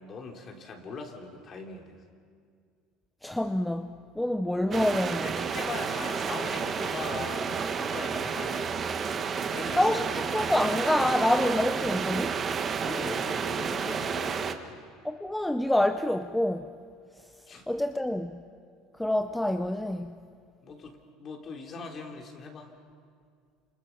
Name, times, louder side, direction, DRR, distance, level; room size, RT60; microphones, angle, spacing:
voice 1, 0.0-2.0 5.2-8.8 9.4-10.1 12.8-14.7 17.5-17.7 20.6-22.7, left 4 dB, 35° left, 3 dB, 3.4 m, -40 dB
voice 2, 3.2-5.4 9.7-12.4 15.0-16.7 17.7-18.4 19.0-20.2, left 1 dB, 5° left, 8 dB, 0.7 m, -27 dB
sound 1, 4.7-14.5, right 6 dB, 30° right, 1.3 m, -31 dB
29.0 x 27.0 x 5.9 m, 2.2 s
cardioid pair, 135°, 0 cm